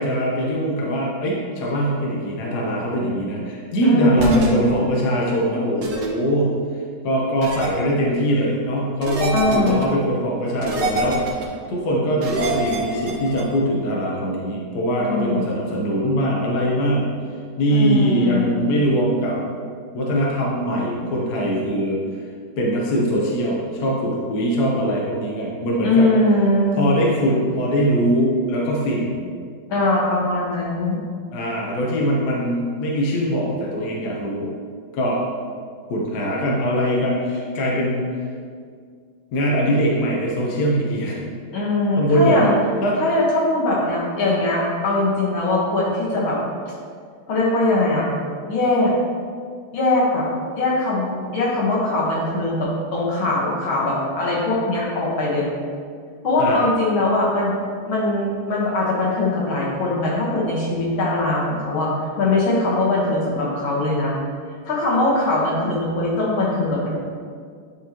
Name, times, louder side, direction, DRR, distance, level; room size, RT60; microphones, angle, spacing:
voice 1, 0.0-6.5 7.0-11.2 11.7-17.1 17.6-19.4 19.9-22.0 22.6-26.1 26.8-29.2 31.3-34.5 34.9-35.2 35.9-38.2 39.3-41.3 42.0-42.5 42.8-43.0 56.4-56.7, equal, 55° left, -3 dB, 1.4 m, -22 dB
voice 2, 3.8-4.6 9.3-9.9 15.0-15.6 17.7-18.7 25.8-26.8 29.7-31.0 41.5-42.6 43.0-46.4 47.3-48.1 48.5-48.9 49.7-50.3 50.6-55.5 56.2-57.6 57.9-64.2 64.7-67.0, left 2 dB, 75° left, -4 dB, 2.2 m, -21 dB
sound 1, 4.2-4.5 5.8-6.1 7.4-7.7 9.0-9.8 10.6-11.5 12.2-13.4, right 1 dB, 50° right, 1.0 m, -26 dB
9.9 x 4.6 x 2.9 m, 2.1 s
omnidirectional pair, 2.2 m